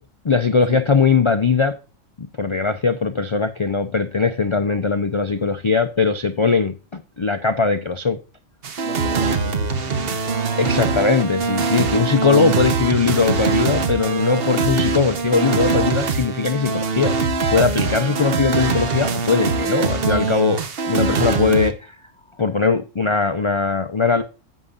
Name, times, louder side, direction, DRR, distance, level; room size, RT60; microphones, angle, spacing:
voice 1, 0.2-1.8 2.2-8.2 10.6-17.1 17.5-22.0 22.4-24.2, left 4 dB, 45° left, 0.3 m, -20 dB
sound 1, 8.6-21.7, right 4 dB, 55° right, 1.1 m, -22 dB
voice 2, 8.8-10.9 17.9-18.1, right 5 dB, 75° right, 2.9 m, -38 dB
11.0 x 8.2 x 2.4 m
omnidirectional pair, 1.3 m